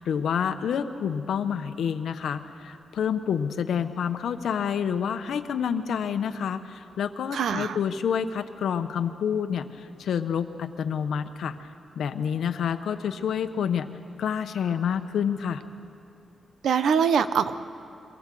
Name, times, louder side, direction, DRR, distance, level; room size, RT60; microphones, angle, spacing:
voice 1, 0.0-11.7 11.9-13.9 14.2-15.6, left 7 dB, 90° left, 9 dB, 0.9 m, -28 dB
voice 2, 7.3-7.8 16.6-17.5, right 7 dB, 85° right, 12 dB, 0.8 m, -23 dB
23.5 x 18.0 x 7.6 m, 2.6 s
wide cardioid pair, 135°, 0 cm